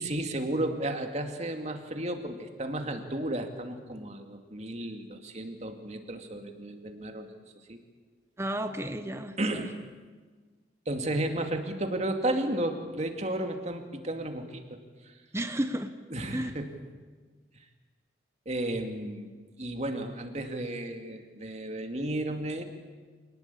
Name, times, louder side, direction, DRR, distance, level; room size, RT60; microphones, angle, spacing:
voice 1, 0.0-7.3 7.7-7.8 9.4-9.8 10.9-14.6 15.0-15.1 16.1-16.7 18.5-19.3 19.6-22.6, right 1 dB, 40° right, 5 dB, 2.4 m, -33 dB
voice 2, 8.4-9.7 15.3-15.9 16.3-16.5, right 1 dB, 15° right, 8 dB, 1.0 m, -32 dB
26.5 x 19.5 x 8.5 m, 1.4 s
head